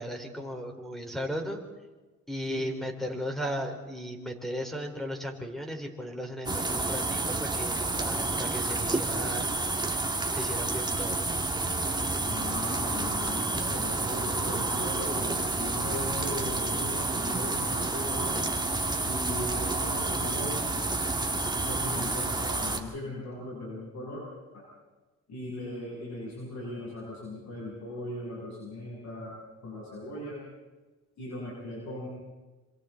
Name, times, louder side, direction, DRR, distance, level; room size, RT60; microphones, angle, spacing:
voice 1, 0.0-1.6 2.3-9.5 10.3-11.2, equal, ahead, 2 dB, 4.2 m, -36 dB
sound 1, 6.5-22.8, right 2 dB, 15° right, 2.4 m, -29 dB
voice 2, 12.2-18.4 19.0-20.7 21.6-24.2 24.5-24.6 25.3-29.4 29.6-30.4 31.2-32.1, left 1 dB, 65° left, -5 dB, 7.6 m, -38 dB
26.5 x 26.5 x 4.0 m, 1.2 s
cardioid pair, 90°, 30 cm